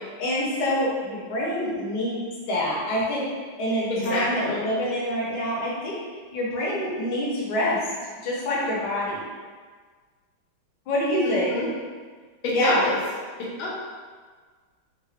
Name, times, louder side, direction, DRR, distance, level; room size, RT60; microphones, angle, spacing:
voice 1, 0.2-3.2 3.6-6.0 6.3-7.8 8.2-9.2 10.9-11.6 12.5-12.8, left 1 dB, 65° left, -6 dB, 1.4 m, -26 dB
voice 2, 3.9-4.6 11.2-11.7 12.4-12.9 13.4-13.7, left 1 dB, 90° left, -5 dB, 1.5 m, -27 dB
3.7 x 2.1 x 3.2 m, 1.5 s
omnidirectional pair, 2.1 m